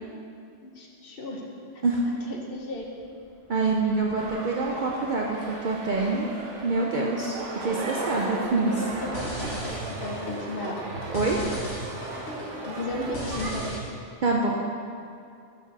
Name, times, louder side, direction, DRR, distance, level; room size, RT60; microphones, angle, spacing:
voice 1, 0.6-1.4 2.3-2.8 8.7-9.3 9.8-10.7 12.7-13.7, left 2 dB, 55° left, 0 dB, 0.9 m, -34 dB
Fixed-wing aircraft airplane, 2.6-9.2, equal, 15° right, 1.0 m, -45 dB
voice 2, 3.5-6.3 6.6-8.8 11.1-11.4 14.2-14.5, right 3 dB, 55° right, -2 dB, 0.6 m, -26 dB
sound 1, 4.2-13.5, right 2 dB, 75° right, 1.1 m, -37 dB
sound 2, 8.7-13.8, right 1 dB, 70° left, 1.5 m, -36 dB
6.0 x 4.3 x 5.9 m, 2.5 s
omnidirectional pair, 1.3 m